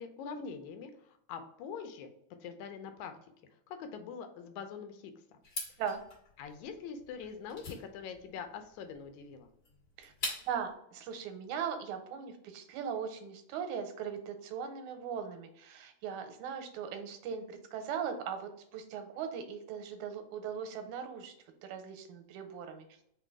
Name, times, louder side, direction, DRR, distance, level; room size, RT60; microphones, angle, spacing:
voice 1, 0.0-2.1 2.4-3.1 3.7-5.4 6.4-9.5, left 6 dB, 85° left, 7 dB, 2.0 m, -44 dB
sound 1, 5.4-10.7, left 2 dB, 45° left, 1.7 m, -43 dB
voice 2, 10.5-21.3 21.6-22.9, right 7 dB, 85° right, 7 dB, 2.0 m, -39 dB
4.9 x 2.2 x 4.6 m, 0.73 s
omnidirectional pair, 3.4 m